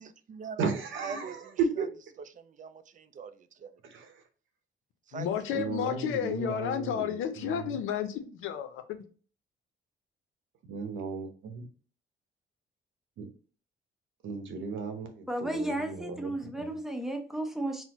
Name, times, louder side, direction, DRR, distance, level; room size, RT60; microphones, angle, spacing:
voice 1, 0.0-0.7 0.9-1.9 2.3-3.8 5.1-5.3, right 7 dB, 40° right, 0.4 m, -43 dB
voice 2, 0.6-1.9 3.9-4.1 5.5-7.8 10.7-11.6 13.2-13.3 14.2-16.3 16.6-16.7, right 5 dB, 75° right, 0.8 m, -35 dB
voice 3, 5.1-9.0, left 9 dB, 85° left, 0.5 m, -32 dB
voice 4, 15.3-17.8, right 1 dB, ahead, 0.6 m, -33 dB
4.3 x 2.1 x 2.8 m
cardioid pair, 90°, 20 cm